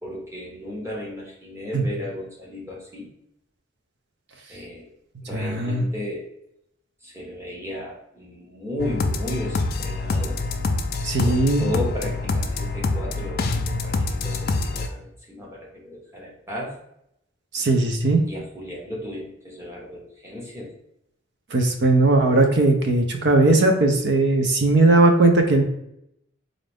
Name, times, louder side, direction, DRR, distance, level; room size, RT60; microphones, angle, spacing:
voice 1, 0.0-3.1 4.5-4.8 5.3-6.2 7.0-10.4 11.2-16.7 18.3-20.7, left 1 dB, 15° right, -3 dB, 0.9 m, -34 dB
voice 2, 5.3-5.8 11.0-11.6 17.5-18.2 21.5-25.6, right 2 dB, 60° right, 4 dB, 0.6 m, -18 dB
sound 1, 8.8-14.9, left 3 dB, 50° left, 0.4 m, -26 dB
4.0 x 2.5 x 3.4 m, 0.79 s
head